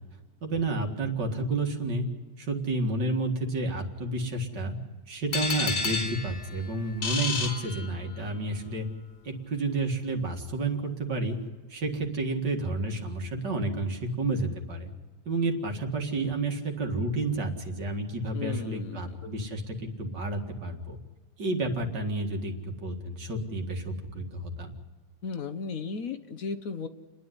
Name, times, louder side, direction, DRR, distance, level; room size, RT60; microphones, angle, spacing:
voice 1, 0.4-2.0 2.4-4.8 5.1-8.9 9.2-11.4 11.7-14.9 15.3-21.0 21.4-24.8, right 2 dB, 70° right, 3 dB, 2.6 m, -30 dB
sound 1, 5.3-8.4, left 3 dB, 80° left, 3.0 m, -31 dB
voice 2, 18.3-19.2 25.2-26.9, left 5 dB, 55° left, 10 dB, 1.2 m, -35 dB
29.5 x 10.5 x 9.7 m, 1.4 s
omnidirectional pair, 1.9 m